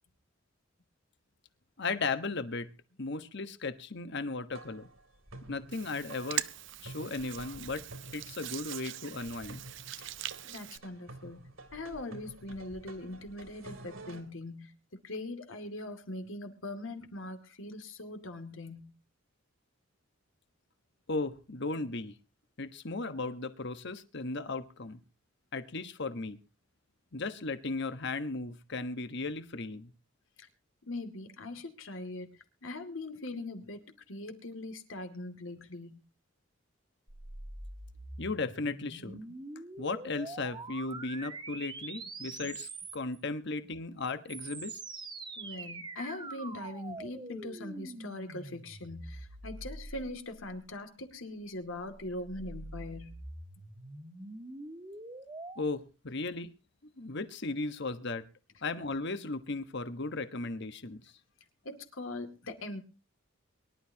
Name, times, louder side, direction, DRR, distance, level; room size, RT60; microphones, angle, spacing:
voice 1, 1.8-2.7 3.0-4.9 5.5-6.4 6.8-7.8 8.1-9.6 21.1-22.2 22.6-25.0 25.5-26.4 27.1-29.9 38.2-39.2 39.6-44.8 55.6-56.5 57.0-58.3 58.6-61.0, left 3 dB, 55° left, 11 dB, 1.3 m, -36 dB
sound 1, 4.5-14.2, right 2 dB, 80° right, 3.4 m, -50 dB
Hands, 5.7-10.8, right 13 dB, 60° right, 0.7 m, -41 dB
voice 2, 10.5-11.4 11.7-14.7 15.0-18.9 30.4-30.5 30.9-36.0 45.4-53.1 61.6-62.8, left 2 dB, 75° left, 6 dB, 2.4 m, -41 dB
sound 2, 37.1-43.2 44.1-50.7 51.7-55.6, right 2 dB, 20° right, 1.4 m, -45 dB
23.5 x 12.0 x 2.9 m, 0.30 s
head